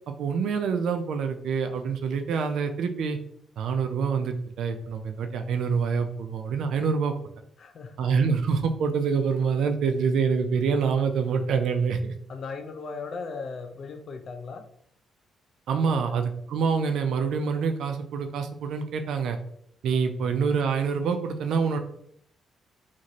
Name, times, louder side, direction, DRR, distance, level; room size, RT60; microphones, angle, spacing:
voice 1, 0.1-3.2 3.6-7.1 8.0-12.1 15.7-19.4 19.8-21.8, right 5 dB, 75° right, 7 dB, 0.3 m, -26 dB
voice 2, 7.6-8.1 12.3-14.6 15.8-16.2 20.2-20.4, left 4 dB, 55° left, 6 dB, 0.4 m, -38 dB
2.6 x 2.5 x 2.9 m, 0.69 s
cardioid pair, 90°, 0 cm